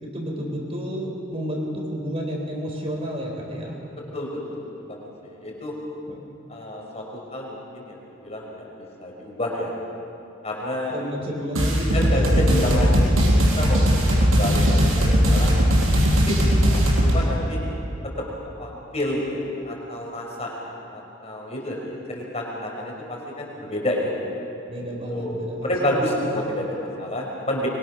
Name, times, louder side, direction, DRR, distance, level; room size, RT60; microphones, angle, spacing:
voice 1, 0.0-3.8 6.1-6.2 10.9-12.3 24.7-26.2, equal, 30° right, -1 dB, 3.9 m, -30 dB
voice 2, 4.1-4.6 4.9-5.7 6.5-8.7 9.0-9.7 10.4-11.0 11.9-15.5 16.1-17.6 18.6-24.1 25.1-25.3 25.6-27.7, left 1 dB, 30° left, -2 dB, 4.7 m, -29 dB
sound 1, 11.5-17.1, equal, 75° right, 5.8 m, -18 dB
24.0 x 23.5 x 6.2 m, 2.8 s
head